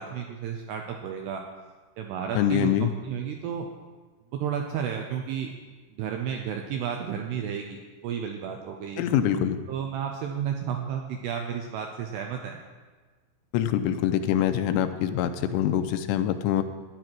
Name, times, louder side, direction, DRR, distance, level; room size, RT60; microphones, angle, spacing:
voice 1, 0.0-1.4 2.0-3.7 4.3-5.5 6.0-9.1 9.7-12.6, right 8 dB, 80° right, 3 dB, 2.4 m, -32 dB
voice 2, 2.4-2.9 9.0-9.6 13.5-16.6, left 10 dB, 85° left, 9 dB, 3.1 m, -24 dB
13.5 x 10.0 x 4.6 m, 1.4 s
omnidirectional pair, 5.6 m